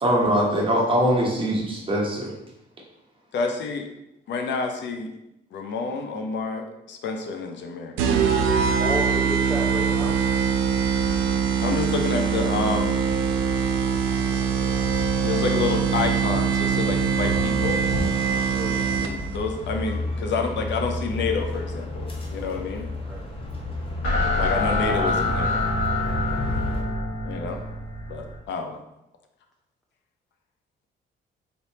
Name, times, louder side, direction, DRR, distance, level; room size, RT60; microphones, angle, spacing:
voice 1, 0.0-2.3, equal, 25° right, -2 dB, 1.2 m, -22 dB
voice 2, 3.3-3.9 4.3-5.1 5.5-7.9 11.6-13.1 15.2-17.8 19.0-22.9 24.4-25.6 27.2-27.6 28.1-28.8, left 4 dB, 65° left, 4 dB, 0.5 m, -29 dB
sound 1, 8.0-19.4, right 6 dB, 90° right, 0.5 m, -23 dB
voice 3, 8.8-10.2 18.5-18.8 23.1-23.3, equal, ahead, -3 dB, 0.5 m, -31 dB
sound 2, 9.4-26.8, left 1 dB, 25° left, 0.9 m, -33 dB
sound 3, 23.3-28.4, left 2 dB, 85° left, 1.5 m, -26 dB
4.0 x 3.4 x 2.8 m, 0.88 s
cardioid pair, 90°, 20 cm